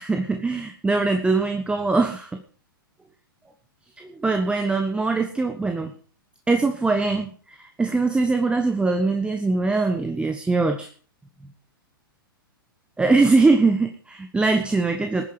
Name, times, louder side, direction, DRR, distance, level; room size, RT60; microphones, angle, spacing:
voice 1, 0.0-2.3 4.0-5.9 6.5-10.9 13.0-15.3, right 3 dB, 10° right, 6 dB, 1.3 m, -22 dB
20.0 x 9.6 x 5.0 m, 0.43 s
figure-of-eight pair, 110°, 12 cm